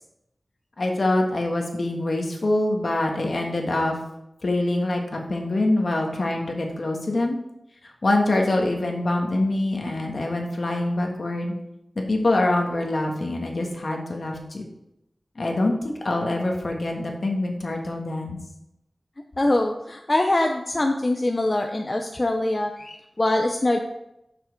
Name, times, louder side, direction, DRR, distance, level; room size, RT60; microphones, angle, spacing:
voice 1, 0.8-4.0 4.4-7.4 8.0-11.5 11.9-14.6 15.3-18.4, left 2 dB, 60° left, 1 dB, 1.6 m, -24 dB
voice 2, 19.4-23.8, left 1 dB, 30° left, 3 dB, 0.6 m, -23 dB
7.3 x 5.9 x 4.5 m, 0.85 s
wide cardioid pair, 90°, 0 cm